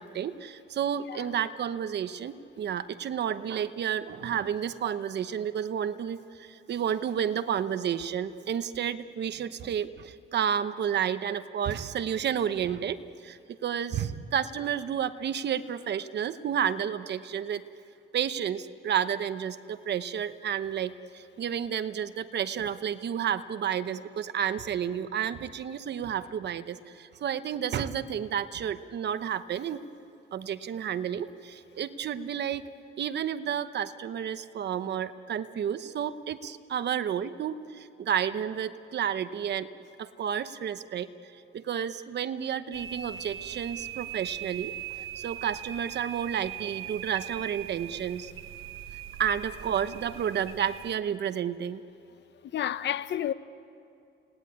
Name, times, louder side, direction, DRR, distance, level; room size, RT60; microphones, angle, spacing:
voice 1, 0.0-17.6 18.1-29.8 30.3-32.7 33.0-39.7 40.0-48.3 49.2-51.8, right 9 dB, 55° right, 0.9 m, -31 dB
sound 1, 42.7-50.9, right 10 dB, 80° right, 0.9 m, -41 dB
voice 2, 52.5-53.3, left 10 dB, 60° left, 0.7 m, -30 dB
29.5 x 18.5 x 9.7 m
cardioid pair, 145°, 21 cm